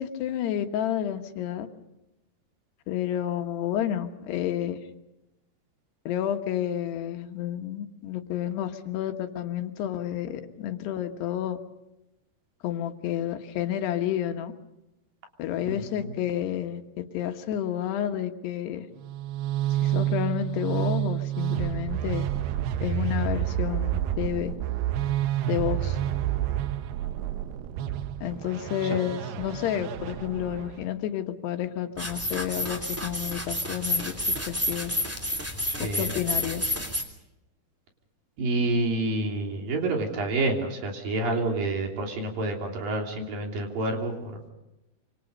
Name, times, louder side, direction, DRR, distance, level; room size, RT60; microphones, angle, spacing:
voice 1, 0.0-1.7 2.9-4.8 6.1-11.6 12.6-14.5 15.4-18.9 19.8-22.3 22.8-24.5 25.5-26.0 28.2-34.1 34.5-34.9 35.8-36.7, left 11 dB, 85° left, 6 dB, 3.5 m, -30 dB
voice 2, 15.7-16.1 28.9-29.0 35.7-36.1 38.4-44.4, right 2 dB, 60° right, 2 dB, 4.8 m, -28 dB
sound 1, 19.0-30.8, right 11 dB, 80° right, 2.8 m, -29 dB
sound 2, 32.0-37.0, left 1 dB, 5° right, 2.3 m, -30 dB
26.5 x 26.0 x 5.4 m, 0.95 s
omnidirectional pair, 4.7 m